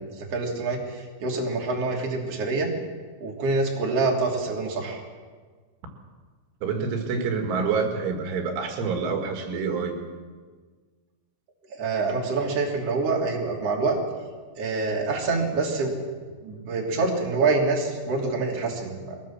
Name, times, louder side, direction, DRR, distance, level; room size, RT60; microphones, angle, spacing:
voice 1, 0.0-2.7 3.2-5.0 11.7-14.0 14.6-15.9 16.4-19.2, right 3 dB, 35° right, -1 dB, 3.7 m, -26 dB
voice 2, 6.6-10.0, right 5 dB, 85° right, 4 dB, 4.5 m, -27 dB
21.5 x 19.0 x 7.4 m, 1.5 s
omnidirectional pair, 5.4 m